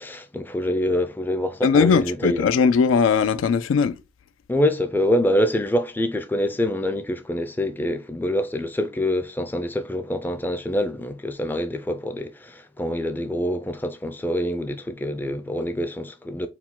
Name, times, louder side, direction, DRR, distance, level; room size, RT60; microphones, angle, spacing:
voice 1, 0.0-2.4 4.5-16.5, left 1 dB, 10° left, 0.3 m, -25 dB
voice 2, 1.6-4.0, left 5 dB, 80° left, 0.3 m, -19 dB
4.7 x 2.1 x 3.7 m
head